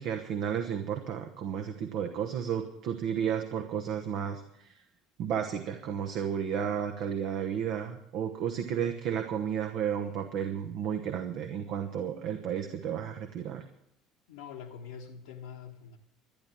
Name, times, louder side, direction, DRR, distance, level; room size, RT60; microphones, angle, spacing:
voice 1, 0.0-4.8 5.2-13.6, right 8 dB, 55° right, 5 dB, 1.1 m, -32 dB
voice 2, 14.3-16.0, left 7 dB, 65° left, -1 dB, 1.2 m, -44 dB
12.5 x 10.5 x 7.3 m, 0.75 s
figure-of-eight pair, 60°, 0 cm